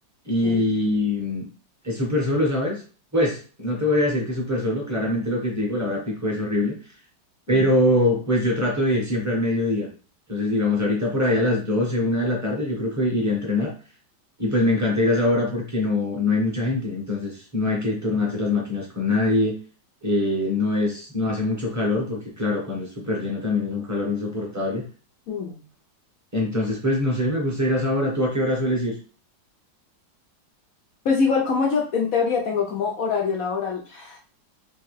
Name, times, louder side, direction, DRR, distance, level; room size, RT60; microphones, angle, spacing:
voice 1, 0.2-1.5 1.8-2.8 3.1-6.7 7.5-9.9 10.3-13.7 14.4-19.5 20.0-24.8 26.3-28.9, left 1 dB, 15° right, -2 dB, 0.8 m, -23 dB
voice 2, 25.3-25.6 31.0-34.2, left 5 dB, 65° left, 1 dB, 0.8 m, -24 dB
3.4 x 3.0 x 3.2 m, 0.38 s
omnidirectional pair, 2.0 m